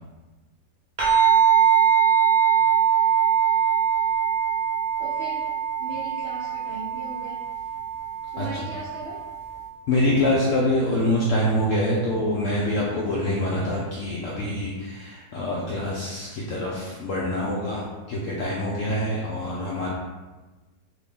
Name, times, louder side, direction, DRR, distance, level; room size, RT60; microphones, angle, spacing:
sound 1, 1.0-9.7, right 8 dB, 35° right, 0.7 m, -22 dB
voice 1, 5.0-5.5 5.8-7.4 8.3-9.2, right 2 dB, 75° right, -7 dB, 0.5 m, -38 dB
voice 2, 9.9-19.9, left 1 dB, 85° left, -5 dB, 0.7 m, -25 dB
2.9 x 2.8 x 3.5 m, 1.2 s
omnidirectional pair, 1.9 m